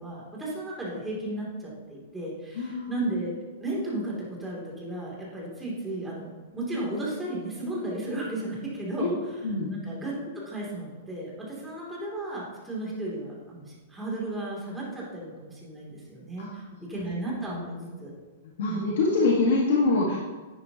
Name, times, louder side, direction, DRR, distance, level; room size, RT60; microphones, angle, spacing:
voice 1, 0.0-9.1 9.6-18.1 18.7-18.9, right 1 dB, 10° right, -5 dB, 2.8 m, -34 dB
voice 2, 2.5-3.0 9.0-9.1 9.4-9.7 16.4-16.9 17.5-17.9 18.4-20.2, left 3 dB, 70° left, -3 dB, 1.6 m, -25 dB
11.0 x 9.5 x 2.9 m, 1.4 s
hypercardioid pair, 155°, 0 cm